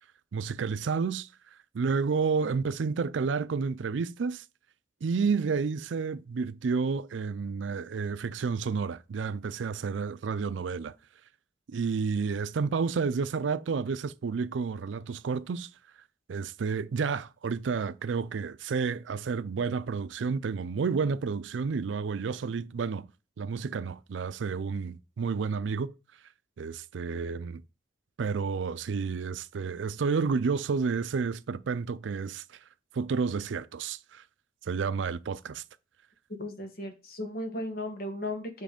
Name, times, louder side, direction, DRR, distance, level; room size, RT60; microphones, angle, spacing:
voice 1, 0.3-1.3 1.7-4.4 5.0-10.9 11.7-15.7 16.3-23.1 23.4-25.9 26.6-27.6 28.2-32.4 32.9-34.2 34.7-35.6, right 5 dB, 80° right, 0.4 m, -30 dB
voice 2, 36.4-38.6, left 1 dB, 55° left, 1.5 m, -36 dB
7.5 x 3.2 x 5.1 m
head